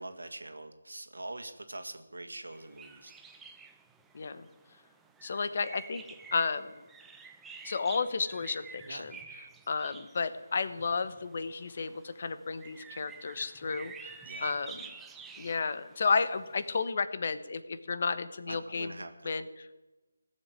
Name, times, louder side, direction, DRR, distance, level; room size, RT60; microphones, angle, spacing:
voice 1, 0.0-3.1 8.9-9.1 14.2-14.5 18.5-19.3, right 2 dB, 80° right, 7 dB, 2.2 m, -43 dB
sound 1, 2.5-16.8, right 5 dB, 5° right, 0.7 m, -50 dB
voice 2, 4.1-4.5 5.2-6.0 6.3-6.8 7.6-9.2 9.7-14.9 15.4-19.0 19.2-19.7, left 4 dB, 45° left, 13 dB, 1.1 m, -32 dB
17.0 x 7.6 x 9.7 m, 1.1 s
figure-of-eight pair, 160°, 0 cm